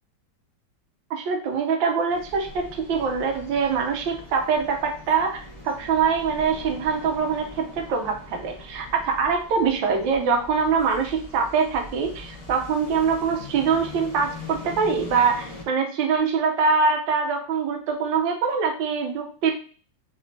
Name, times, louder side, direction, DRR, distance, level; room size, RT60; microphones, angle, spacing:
voice 1, 1.1-19.5, right 5 dB, 90° right, 3 dB, 1.4 m, -24 dB
sound 1, 2.1-15.6, left 2 dB, 25° left, 0.8 m, -42 dB
4.0 x 3.0 x 2.8 m, 0.40 s
omnidirectional pair, 2.0 m